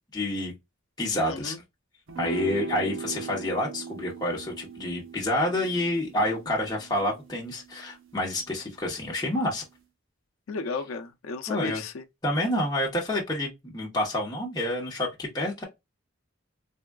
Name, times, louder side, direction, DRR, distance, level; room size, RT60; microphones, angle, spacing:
voice 1, 0.1-0.5 1.0-1.5 2.2-9.6 11.5-11.8 12.2-15.6, left 1 dB, 20° left, 0.9 m, -28 dB
voice 2, 1.3-1.6 10.5-12.0, left 4 dB, 85° left, 0.5 m, -34 dB
sound 1, 2.1-8.6, right 5 dB, 75° right, 0.8 m, -39 dB
3.4 x 2.3 x 2.2 m
head